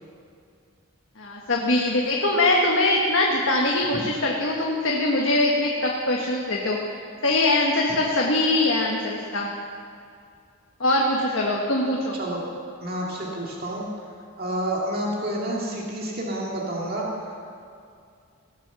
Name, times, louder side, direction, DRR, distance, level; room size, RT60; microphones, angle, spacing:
voice 1, 1.2-6.8 7.2-9.5 10.8-12.2, left 2 dB, 60° left, -2 dB, 1.4 m, -22 dB
voice 2, 12.8-13.9 14.4-17.4, right 1 dB, 45° right, -3 dB, 2.1 m, -29 dB
18.0 x 7.5 x 7.0 m, 2.4 s
head